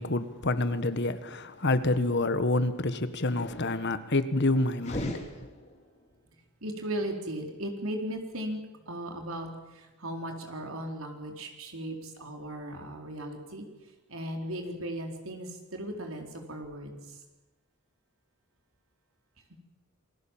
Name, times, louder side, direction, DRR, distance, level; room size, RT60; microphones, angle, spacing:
voice 1, 0.0-5.2, left 2 dB, 55° left, 1.5 m, -28 dB
sound 1, 4.8-6.1, left 1 dB, 30° left, 3.5 m, -37 dB
voice 2, 6.6-9.5 9.7-11.9 12.2-13.7 14.1-17.0, right 1 dB, 75° right, 4.2 m, -37 dB
28.0 x 20.5 x 7.4 m
head